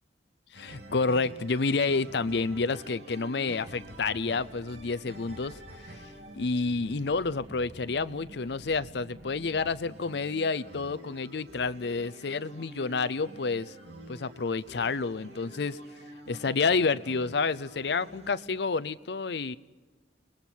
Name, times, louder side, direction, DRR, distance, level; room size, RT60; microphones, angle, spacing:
voice 1, 0.5-5.6 6.4-13.8 14.1-15.8 16.3-19.6, left 4 dB, 65° left, 0.6 m, -29 dB
sound 1, 0.5-18.5, right 1 dB, 75° right, 3.2 m, -48 dB
30.0 x 20.5 x 4.6 m
head